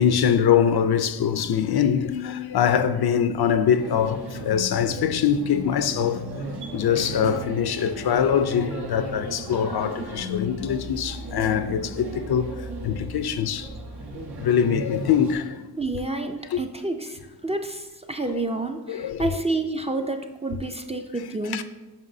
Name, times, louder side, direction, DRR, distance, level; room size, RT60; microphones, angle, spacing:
voice 1, 0.0-6.2 6.7-12.5 12.8-13.7 14.4-15.6 16.5-16.6 18.9-19.3 21.5-21.6, left 8 dB, 70° left, 0.5 m, -23 dB
sound 1, 3.8-15.3, equal, 85° right, 1.3 m, -35 dB
voice 2, 15.8-21.6, right 2 dB, 15° right, 0.3 m, -29 dB
9.6 x 5.5 x 2.7 m
wide cardioid pair, 135°, 39 cm